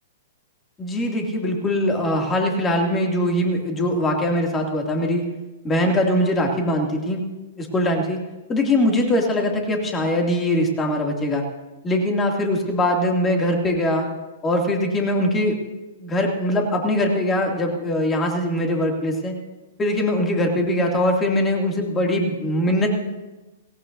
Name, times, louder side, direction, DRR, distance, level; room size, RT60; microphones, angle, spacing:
voice 1, 0.8-5.2 5.6-7.2 7.6-8.2 8.5-11.4 11.8-14.1 14.4-15.6 16.0-19.3 19.8-22.9, left 1 dB, 20° left, 1 dB, 2.6 m, -22 dB
18.0 x 17.0 x 2.7 m, 1.1 s
hypercardioid pair, 115°, 0 cm